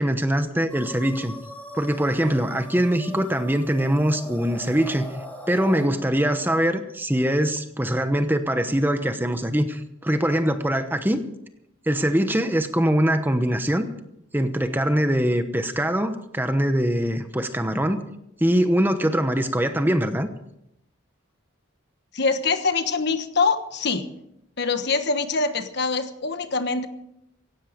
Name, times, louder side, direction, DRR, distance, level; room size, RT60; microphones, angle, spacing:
voice 1, 0.0-1.3 1.7-5.1 5.5-11.2 11.9-13.9 14.3-18.0 18.4-20.3, equal, 10° right, 8 dB, 1.0 m, -23 dB
sound 1, 0.7-5.9, equal, 10° left, 2.4 m, -40 dB
voice 2, 22.1-24.1 24.6-26.9, left 4 dB, 55° left, 9 dB, 1.3 m, -24 dB
17.0 x 16.0 x 5.2 m, 0.81 s
head